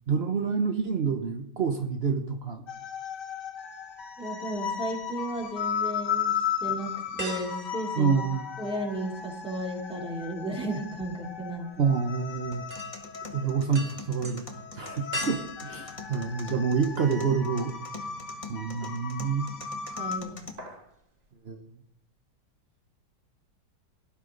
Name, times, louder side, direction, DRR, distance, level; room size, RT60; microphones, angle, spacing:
voice 1, 0.1-2.6 8.0-8.4 11.8-12.7 13.3-14.4 14.7-17.7 18.5-19.5 21.4-21.6, right 5 dB, 70° right, 6 dB, 0.5 m, -27 dB
sound 1, 2.7-20.2, left 7 dB, 55° left, 1.6 m, -36 dB
voice 2, 4.2-6.3 6.6-8.2 8.6-11.9 19.9-20.4, right 1 dB, ahead, -1 dB, 2.7 m, -34 dB
sound 2, 4.6-5.5 6.0-6.1 7.2-8.9 9.2-17.1 17.5-17.6 19.1-19.6 19.9-20.1 20.4-20.9 21.3-21.4, equal, 25° right, 1.2 m, -42 dB
sound 3, 12.5-20.5, left 4 dB, 20° left, 1.0 m, -45 dB
17.5 x 11.5 x 3.9 m, 0.72 s
omnidirectional pair, 2.3 m